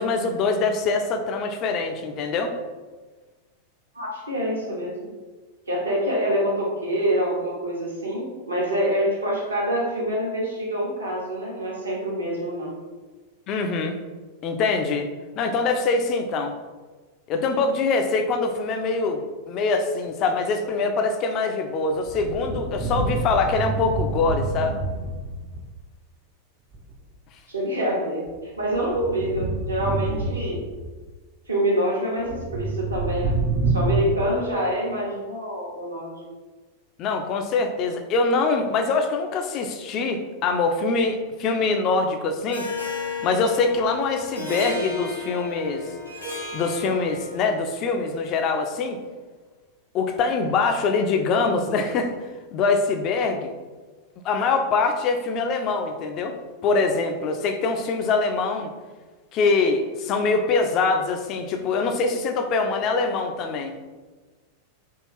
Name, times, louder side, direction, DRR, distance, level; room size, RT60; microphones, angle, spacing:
voice 1, 0.0-2.5 13.5-14.0 14.4-15.1 15.4-16.5 17.3-24.7 37.0-42.7 43.2-45.9 46.5-49.0 49.9-52.1 52.5-53.5 54.2-56.3 56.6-58.7 59.3-63.8, left 4 dB, 35° left, 5 dB, 0.4 m, -24 dB
voice 2, 3.9-5.1 5.7-12.7 27.5-30.6 31.5-33.4 33.7-36.3, equal, 80° right, -4 dB, 0.9 m, -26 dB
sound 1, 21.9-25.7 26.7-27.0 28.3-30.9 32.2-34.1, right 3 dB, 40° right, 0.4 m, -27 dB
Harp, 42.5-47.5, left 3 dB, 85° left, 0.8 m, -33 dB
3.6 x 2.3 x 3.1 m, 1.3 s
figure-of-eight pair, 90°, 0 cm